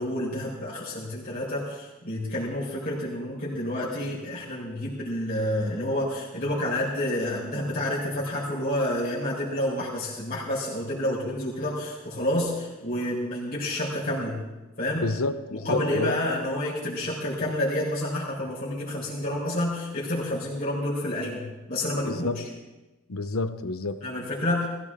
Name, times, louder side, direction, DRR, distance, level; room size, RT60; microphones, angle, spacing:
voice 1, 0.0-14.4 14.8-15.1 15.5-22.4 24.0-24.7, left 1 dB, 40° left, 4.4 m, -29 dB
voice 2, 15.0-16.2 21.9-22.4 23.1-24.0, left 3 dB, 75° left, 0.9 m, -29 dB
20.5 x 16.5 x 3.7 m
head